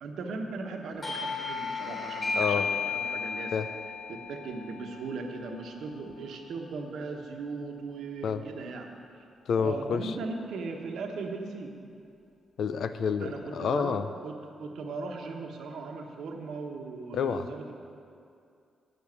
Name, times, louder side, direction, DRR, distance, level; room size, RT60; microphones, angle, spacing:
voice 1, 0.0-3.5 4.1-9.2 9.6-11.7 13.2-14.0 14.2-17.7, right 3 dB, 70° right, 3 dB, 1.1 m, -38 dB
Doorbell, 1.0-6.3, left 5 dB, 40° left, 3.1 m, -34 dB
voice 2, 2.3-2.7 3.5-3.7 8.2-8.4 9.5-10.2 12.6-14.1 17.1-17.5, left 6 dB, 65° left, 11 dB, 0.5 m, -29 dB
8.5 x 6.9 x 8.4 m, 2.5 s
hypercardioid pair, 40°, 0 cm